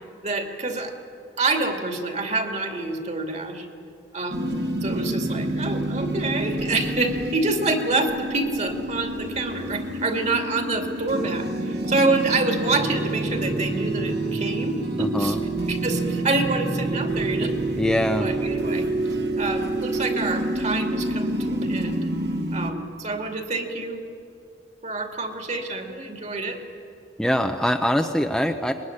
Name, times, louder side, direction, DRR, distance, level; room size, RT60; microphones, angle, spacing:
voice 1, 0.2-0.9 1.4-3.7 4.1-4.5 4.8-15.4 15.7-17.5 18.2-18.9 19.4-22.1 22.5-24.0 24.8-26.6, right 3 dB, 40° right, 5 dB, 2.5 m, -27 dB
sound 1, 4.3-22.7, right 1 dB, 65° right, 2.5 m, -28 dB
voice 2, 15.0-15.4 17.8-18.3 27.2-28.7, equal, 5° left, 4 dB, 0.8 m, -23 dB
24.0 x 21.0 x 9.9 m, 2.5 s
head